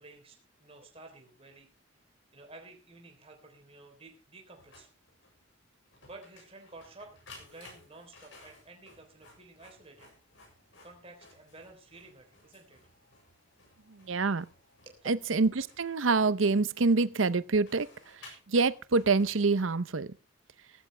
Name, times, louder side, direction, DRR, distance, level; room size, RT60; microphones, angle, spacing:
voice 1, 0.0-1.7 2.3-4.9 6.0-10.1 10.8-12.8 14.9-15.1, right 2 dB, 30° right, 3.5 m, -52 dB
Printer, 4.5-19.9, left 3 dB, 65° left, 7.2 m, -58 dB
voice 2, 13.9-14.5 15.1-17.9 18.5-20.1, right 3 dB, 75° right, 0.7 m, -26 dB
16.0 x 14.5 x 3.3 m
head